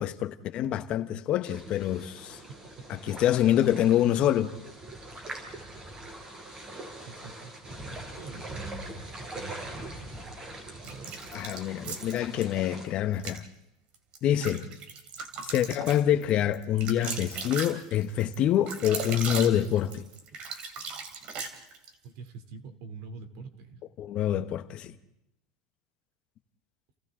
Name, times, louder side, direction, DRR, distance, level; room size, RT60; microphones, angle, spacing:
voice 1, 0.0-2.4 2.9-4.5 11.3-13.4 14.2-14.7 15.5-20.0 24.0-24.9, left 11 dB, 45° left, 1.1 m, -26 dB
sound 1, 1.4-12.9, right 2 dB, 25° right, 5.2 m, -42 dB
voice 2, 7.1-9.0 9.3-9.9 10.8-11.2 11.9-12.0 22.0-23.8, right 3 dB, 60° right, 3.1 m, -45 dB
sound 2, 10.8-12.5 13.1-13.4 13.9-21.9, right 5 dB, 45° right, 3.1 m, -38 dB
29.5 x 29.0 x 3.8 m
supercardioid pair, 130°, 3 cm